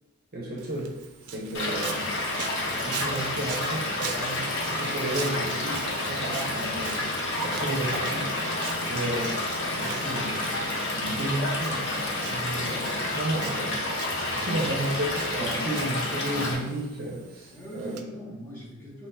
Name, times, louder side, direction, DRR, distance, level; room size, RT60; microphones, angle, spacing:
voice 1, 0.3-0.9 1.3-2.1 2.8-7.0 7.4-8.3 8.9-9.3 9.6-10.4 10.9-13.8 14.4-18.0, right 1 dB, 45° right, -3 dB, 0.6 m, -32 dB
Walk footsteps, 0.6-18.0, right 7 dB, 85° right, 0.4 m, -43 dB
Stream / Liquid, 1.5-16.5, left 2 dB, 55° left, 0.7 m, -29 dB
voice 2, 17.5-19.1, right 1 dB, 10° left, -8 dB, 1.1 m, -42 dB
4.4 x 3.0 x 2.2 m, 1.0 s
head